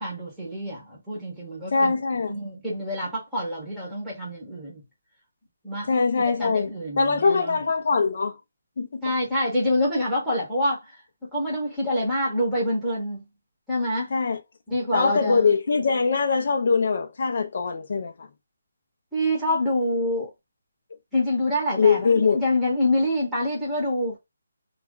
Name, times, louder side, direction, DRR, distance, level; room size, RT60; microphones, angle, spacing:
voice 1, 0.0-1.9 2.3-4.8 5.6-5.9 6.4-7.6 9.0-11.0 11.3-13.2 13.7-14.1 14.7-15.5 19.1-20.3 21.1-24.2, left 1 dB, ahead, 0.9 m, -26 dB
voice 2, 1.7-2.3 5.9-6.7 7.0-8.4 8.8-9.0 14.1-14.4 14.9-18.3 21.8-22.4, left 4 dB, 45° left, 0.4 m, -22 dB
2.4 x 2.2 x 3.6 m
hypercardioid pair, 170°, 0 cm